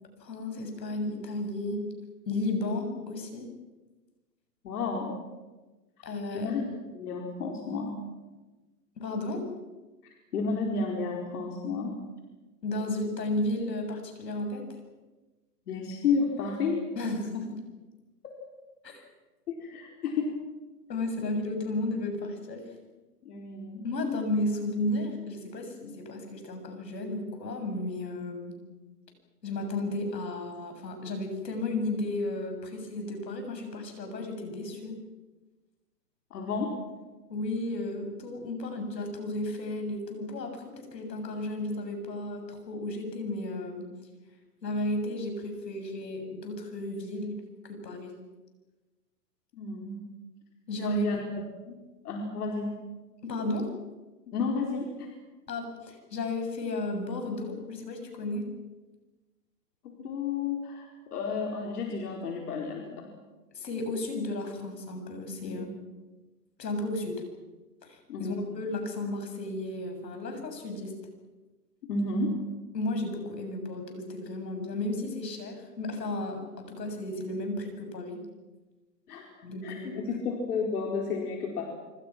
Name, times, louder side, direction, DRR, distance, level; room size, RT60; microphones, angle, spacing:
voice 1, 0.2-1.9 2.3-3.5 6.0-6.5 9.0-9.4 12.6-14.8 17.0-17.6 18.8-19.0 20.9-22.6 23.8-28.6 29.4-35.0 37.3-43.9 44.6-48.2 50.7-51.1 53.2-53.7 55.5-58.5 63.5-65.7 66.6-67.2 67.8-71.0 72.7-78.3 79.4-80.1, left 2 dB, 85° left, 5 dB, 7.5 m, -33 dB
voice 2, 4.6-5.1 6.3-6.7 6.9-7.9 10.3-11.9 15.7-16.9 19.5-20.3 23.2-23.8 36.3-36.7 49.5-50.0 50.8-51.2 51.7-51.8 52.0-52.7 54.3-55.1 59.8-63.1 65.4-65.6 68.1-68.3 71.9-72.3 79.1-79.3 79.6-81.6, left 4 dB, 65° left, 0 dB, 4.7 m, -31 dB
27.0 x 25.5 x 6.1 m, 1.2 s
hypercardioid pair, 145°, 49 cm